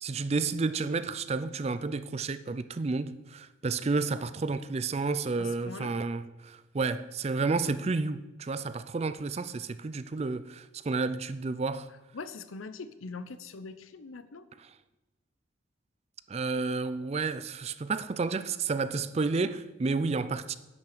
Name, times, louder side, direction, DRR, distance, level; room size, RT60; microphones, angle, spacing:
voice 1, 0.0-11.9 16.3-20.6, right 4 dB, 30° right, 0.4 m, -31 dB
voice 2, 5.4-6.0 12.1-14.5, left 4 dB, 85° left, 0.7 m, -42 dB
10.5 x 5.9 x 6.7 m
head